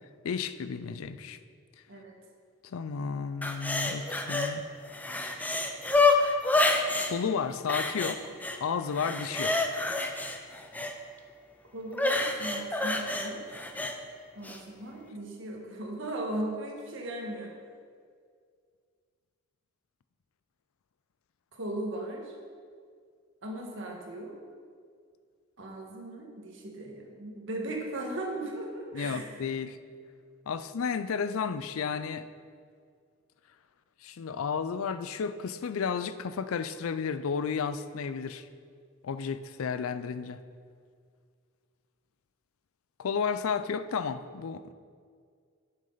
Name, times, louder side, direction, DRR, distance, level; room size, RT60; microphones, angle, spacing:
voice 1, 0.2-1.4 2.6-4.7 7.0-8.3 8.6-9.6 28.9-29.8 30.5-32.3 34.0-38.5 39.0-40.4 43.0-44.7, left 6 dB, 80° left, 12 dB, 0.4 m, -32 dB
sound 1, 3.4-4.5 4.9-7.1 7.7-8.6 8.9-10.9 11.9-13.9 14.4-14.6, left 3 dB, 10° left, 0.5 m, -28 dB
voice 2, 11.7-13.4 14.3-17.5 21.5-22.3 23.4-24.3 25.6-29.4, right 1 dB, 65° right, 0 dB, 1.5 m, -37 dB
11.0 x 6.3 x 3.9 m, 2.1 s
head